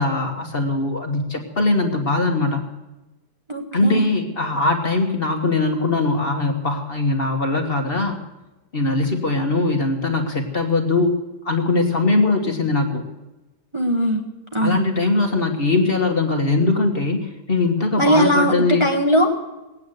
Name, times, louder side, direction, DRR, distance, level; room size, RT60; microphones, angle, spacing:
voice 1, 0.0-2.7 3.7-8.2 8.7-11.2 11.4-13.0 14.6-18.9, left 3 dB, 35° left, 3 dB, 1.6 m, -21 dB
voice 2, 3.5-4.1 13.7-14.2 14.5-14.8 18.0-19.4, equal, 20° right, 1 dB, 1.1 m, -19 dB
19.5 x 8.8 x 8.0 m, 1.0 s
omnidirectional pair, 1.7 m